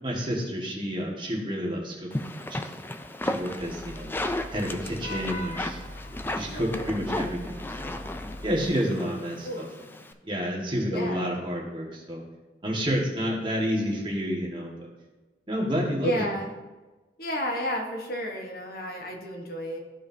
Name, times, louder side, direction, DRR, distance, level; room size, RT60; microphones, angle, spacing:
voice 1, 0.0-2.7 3.2-4.1 4.5-5.8 6.3-7.9 8.4-9.9 10.2-12.2 12.6-14.9 15.5-16.2, equal, 30° right, -3 dB, 1.7 m, -30 dB
sound 1, 2.1-10.1, left 1 dB, 10° left, 0.3 m, -34 dB
Vehicle horn car horn honking / Traffic noise roadway noise, 3.3-8.7, left 1 dB, 75° left, 1.1 m, -41 dB
voice 2, 6.5-6.9 9.4-9.7 10.9-11.4 16.0-16.5 17.2-19.8, equal, 55° left, 1 dB, 1.2 m, -32 dB
14.0 x 4.9 x 2.7 m, 1.2 s
head